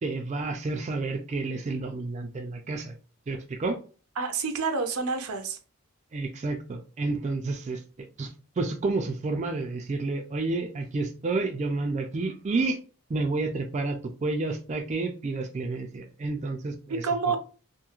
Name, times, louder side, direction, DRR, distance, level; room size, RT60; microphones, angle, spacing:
voice 1, 0.0-2.9 3.3-3.8 6.1-7.8 8.2-8.3 8.6-12.8 13.1-17.0, right 3 dB, 30° right, 0.3 m, -30 dB
voice 2, 4.2-5.6 16.9-17.4, right 4 dB, 80° right, 0.6 m, -28 dB
2.9 x 2.6 x 2.3 m
head